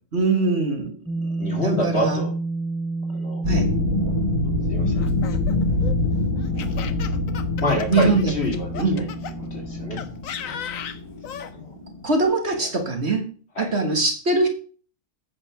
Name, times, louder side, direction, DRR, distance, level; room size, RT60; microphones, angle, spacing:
voice 1, 0.1-0.9 1.3-2.2 3.5-3.7 7.9-8.3 8.8-9.1 12.0-13.3 13.6-14.5, right 3 dB, 50° right, 5 dB, 1.9 m, -22 dB
sound 1, 1.1-10.1, right 3 dB, 5° left, 0.8 m, -31 dB
voice 2, 1.4-2.3 3.1-3.4 4.7-5.1 7.6-9.1 9.5-10.1 10.4-10.6 11.5-11.7 12.5-12.7 13.6-13.7, left 1 dB, 45° left, 2 dB, 2.7 m, -27 dB
sound 2, 3.4-12.2, left 2 dB, 85° right, 3.7 m, -26 dB
Laughter, 5.0-9.3 10.0-11.5, left 8 dB, 65° left, 1.2 m, -36 dB
8.7 x 6.1 x 6.2 m, 0.39 s
omnidirectional pair, 1.5 m